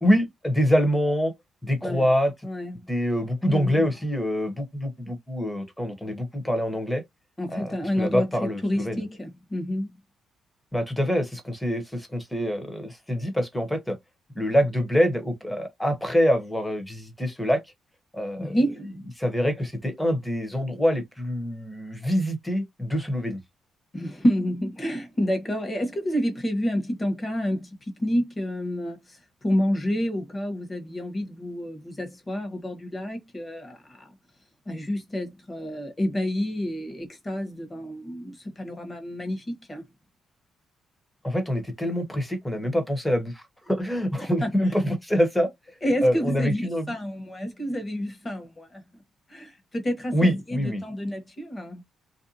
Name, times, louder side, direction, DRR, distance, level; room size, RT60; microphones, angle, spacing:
voice 1, 0.0-1.3 1.6-2.3 2.9-7.0 7.5-9.0 10.7-14.0 14.3-17.6 18.1-18.6 19.2-23.4 41.2-45.5 46.0-46.9 50.1-50.8, equal, 5° left, 0.9 m, -25 dB
voice 2, 2.4-2.9 3.5-3.9 7.4-9.9 18.4-18.9 23.9-34.1 34.7-39.8 44.4-44.5 45.8-48.8 49.3-51.8, equal, 25° left, 1.1 m, -29 dB
2.6 x 2.2 x 2.7 m
cardioid pair, 90°, 0 cm